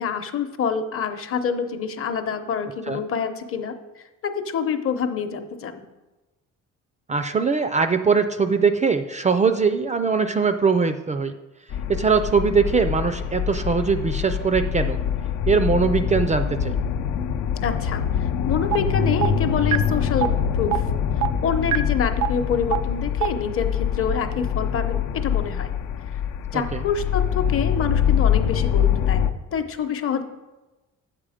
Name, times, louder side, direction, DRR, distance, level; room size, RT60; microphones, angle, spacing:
voice 1, 0.0-5.9 17.6-20.8 21.4-25.7 26.5-29.3 29.5-30.2, left 6 dB, 45° left, 8 dB, 0.8 m, -27 dB
voice 2, 7.1-11.3 11.9-15.0 15.5-16.7 26.5-26.8, right 5 dB, 25° right, 9 dB, 0.4 m, -21 dB
sound 1, 11.7-29.3, left 8 dB, 85° left, 0.7 m, -24 dB
sound 2, 18.7-18.8 19.2-19.3 19.7-19.8 20.2-20.3 20.7-20.8 21.2-21.3 21.7-21.8 22.2-22.3 22.7-22.8 23.2-23.3, right 14 dB, 90° right, 0.5 m, -20 dB
9.0 x 7.5 x 5.0 m, 1.1 s
cardioid pair, 140°, 30 cm